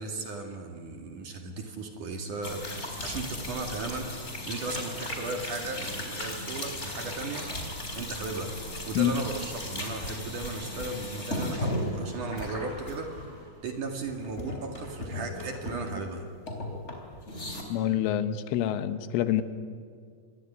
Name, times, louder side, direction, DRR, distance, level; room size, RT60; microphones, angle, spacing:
voice 1, 0.0-4.1 4.5-7.5 8.0-8.6 8.9-16.3, right 3 dB, 50° right, 4 dB, 3.1 m, -36 dB
sound 1, 2.4-13.8 14.1-16.2 16.5-17.6, left 1 dB, 15° left, 3.8 m, -36 dB
voice 2, 17.7-19.4, left 11 dB, 85° left, 11 dB, 3.8 m, -26 dB
26.5 x 21.5 x 9.7 m, 2.2 s
omnidirectional pair, 5.5 m